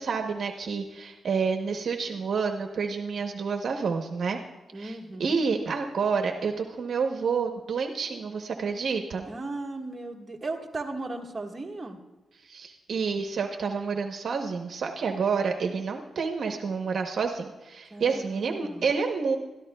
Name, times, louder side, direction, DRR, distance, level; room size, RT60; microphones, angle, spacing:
voice 1, 0.0-4.4 4.7-9.3 12.4-19.4, right 5 dB, 60° right, 4 dB, 0.8 m, -29 dB
voice 2, 4.7-5.4 9.2-12.0 17.9-18.8, right 2 dB, 15° right, 0 dB, 1.4 m, -36 dB
23.0 x 13.0 x 2.2 m, 1.1 s
wide cardioid pair, 145°, 0 cm